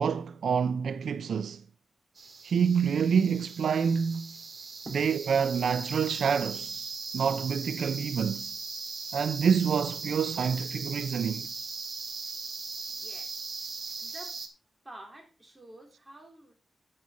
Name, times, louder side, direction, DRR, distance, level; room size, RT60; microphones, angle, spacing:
voice 1, 0.0-1.6 2.4-4.3 4.9-8.6 9.1-11.5, right 6 dB, 85° right, 0.4 m, -27 dB
sound 1, 2.2-14.5, right 4 dB, 55° right, 2.0 m, -39 dB
voice 2, 12.9-13.3 14.0-14.4 14.8-16.5, right 1 dB, 20° right, 4.0 m, -48 dB
10.5 x 8.7 x 4.0 m
cardioid pair, 85°, 0 cm